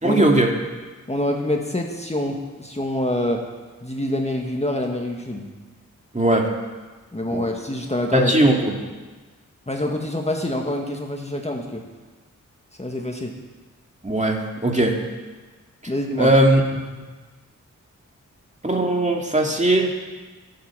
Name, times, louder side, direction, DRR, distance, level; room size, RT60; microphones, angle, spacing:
voice 1, 0.0-0.5 6.1-6.5 7.3-7.5 8.1-8.8 14.0-15.0 15.8-15.9 16.2-16.6 16.9-17.0 18.6-19.9, right 1 dB, 20° right, 1 dB, 2.3 m, -19 dB
voice 2, 1.1-3.4 3.8-5.5 7.1-8.3 9.7-11.8 12.8-13.3 15.9-16.3, left 1 dB, 20° left, 1 dB, 1.8 m, -26 dB
12.5 x 8.0 x 7.5 m, 1.3 s
cardioid pair, 45°, 32 cm